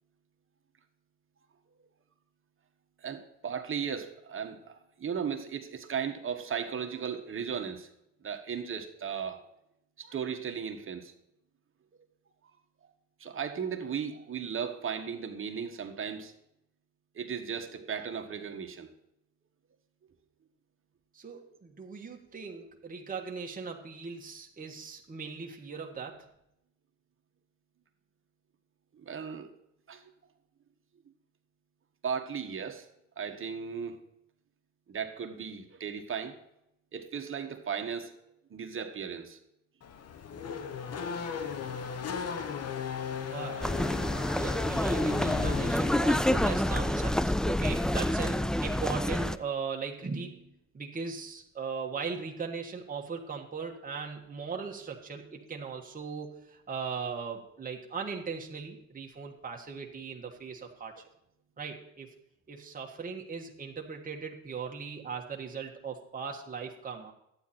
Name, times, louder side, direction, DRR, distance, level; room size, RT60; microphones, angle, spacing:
voice 1, 3.0-7.9 8.2-9.4 10.0-11.1 13.2-16.3 17.1-18.9 28.9-29.5 29.9-30.1 32.0-32.9 33.2-34.0 34.9-36.4 36.9-38.1 38.5-39.4 44.7-44.8, right 7 dB, 45° right, 6 dB, 1.4 m, -36 dB
voice 2, 21.1-26.3 43.2-43.8 44.1-61.0 61.6-62.1 62.5-67.1, right 5 dB, 30° right, 1 dB, 1.5 m, -39 dB
Race car auto racing / Accelerating revving vroom, 39.8-46.5, left 7 dB, 55° left, 1.1 m, -37 dB
sound 1, 43.6-49.4, left 1 dB, ahead, 0.3 m, -28 dB
11.5 x 9.0 x 4.3 m, 0.80 s
cardioid pair, 90°, 30 cm